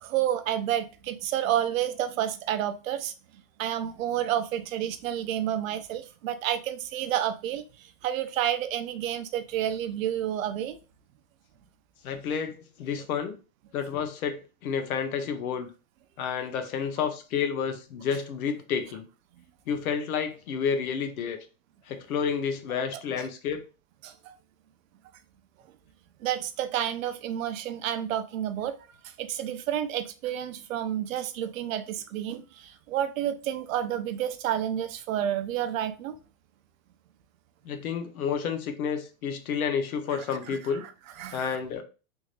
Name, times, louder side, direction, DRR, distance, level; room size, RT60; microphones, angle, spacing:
voice 1, 0.0-3.1 3.6-10.8 23.2-23.3 24.0-24.3 26.2-28.8 29.0-36.2 40.1-40.9 41.2-41.6, right 11 dB, 70° right, 0.6 m, -30 dB
voice 2, 12.0-13.4 13.7-15.7 16.2-19.1 19.7-21.4 21.9-23.6 37.6-40.8 41.3-41.8, left 7 dB, 85° left, 0.9 m, -30 dB
3.5 x 2.7 x 3.1 m
supercardioid pair, 170°, 42 cm